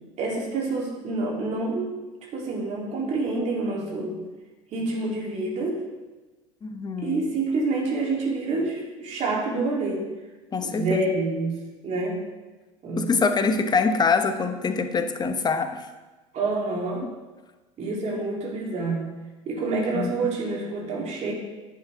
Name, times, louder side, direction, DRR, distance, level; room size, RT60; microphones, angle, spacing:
voice 1, 0.2-1.9 2.3-4.2 4.7-5.8 7.0-10.0 10.6-11.6 11.8-12.2 12.8-13.1 16.3-17.1 17.8-19.2 19.4-21.3, right 3 dB, 45° right, -2 dB, 3.3 m, -27 dB
voice 2, 6.6-7.2 10.5-11.1 13.0-15.8 19.9-20.1, left 4 dB, 25° left, 8 dB, 1.0 m, -24 dB
10.5 x 9.0 x 3.6 m, 1.2 s
hypercardioid pair, 75°, 16 cm